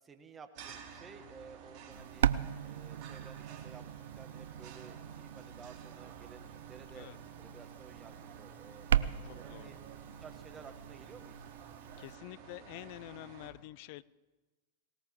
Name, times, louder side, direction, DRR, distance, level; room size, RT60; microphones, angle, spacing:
voice 1, 0.0-2.3 2.6-7.1 7.4-9.8 10.2-11.5, right 5 dB, 20° right, 7 dB, 1.7 m, -54 dB
sound 1, 0.5-13.5, right 6 dB, 50° right, 2.9 m, -52 dB
sound 2, 1.9-12.2, right 10 dB, 75° right, 0.5 m, -38 dB
voice 2, 9.5-9.8 12.0-14.0, left 18 dB, 55° left, 20 dB, 0.5 m, -47 dB
19.5 x 19.0 x 3.7 m, 1.2 s
hypercardioid pair, 105°, 0 cm